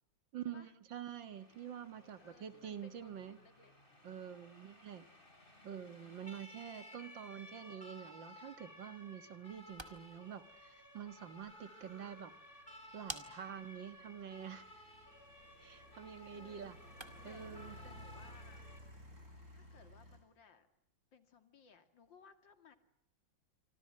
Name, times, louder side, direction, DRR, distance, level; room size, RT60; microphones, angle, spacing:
voice 1, 0.3-3.4 4.0-5.0 5.6-12.3 12.9-14.7 15.6-16.8 17.2-17.8, right 8 dB, 80° right, 11 dB, 2.3 m, -47 dB
Siren, 1.1-18.8, left 1 dB, 25° left, 4.9 m, -57 dB
voice 2, 2.0-3.7 5.5-5.9 16.3-16.7 17.2-17.5 17.8-18.6 19.5-20.7 21.1-22.8, left 5 dB, 80° left, 9 dB, 2.9 m, -62 dB
sound 1, 9.5-17.4, right 1 dB, 15° right, 2.0 m, -55 dB
sound 2, 9.5-9.6 9.8-20.2, equal, 50° right, 8.0 m, -57 dB
27.5 x 25.5 x 7.6 m, 0.80 s
omnidirectional pair, 2.0 m